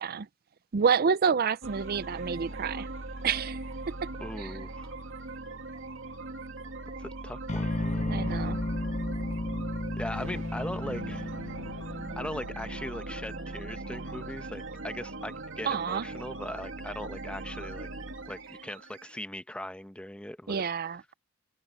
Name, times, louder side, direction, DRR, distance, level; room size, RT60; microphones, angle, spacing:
voice 1, 0.7-2.9 3.2-3.6 3.9-4.1 4.4-4.5 8.1-8.6 15.6-16.0 20.5-21.1, right 6 dB, 50° right, 0.5 m, -28 dB
sound 1, 1.6-19.2, right 2 dB, 70° right, 2.4 m, -40 dB
voice 2, 4.2-4.9 7.0-8.4 10.0-11.3 12.2-17.9 18.3-20.6, left 1 dB, 5° left, 1.0 m, -39 dB
sound 2, 7.5-13.5, left 1 dB, 35° left, 0.8 m, -34 dB
open air
head